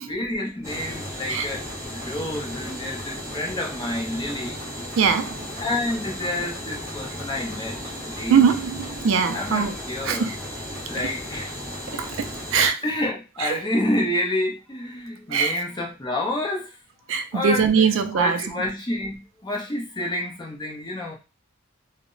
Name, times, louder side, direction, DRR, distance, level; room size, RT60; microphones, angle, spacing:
voice 1, 0.1-1.6 1.9-4.6 5.6-8.6 9.3-10.3 10.9-11.5 12.8-16.8 17.3-21.2, left 1 dB, 20° left, 0.6 m, -29 dB
sound 1, 0.6-12.7, equal, 15° right, 0.9 m, -35 dB
voice 2, 5.0-5.5 8.3-9.7 10.0-10.4 11.0-11.1 11.9-12.8 13.4-13.6 15.3-15.6 17.1-18.4, right 6 dB, 70° right, 0.3 m, -22 dB
2.0 x 2.0 x 3.7 m
head